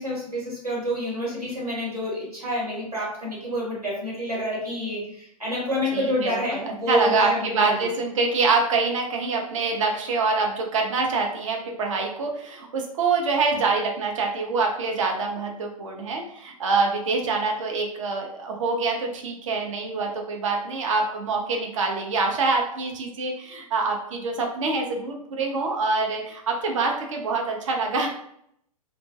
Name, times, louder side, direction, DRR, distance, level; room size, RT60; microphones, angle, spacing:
voice 1, 0.0-7.7, equal, 85° right, -4 dB, 1.3 m, -28 dB
voice 2, 5.9-28.1, right 4 dB, 60° right, 2 dB, 0.5 m, -25 dB
2.3 x 2.1 x 2.6 m, 0.71 s
figure-of-eight pair, 110°, 19 cm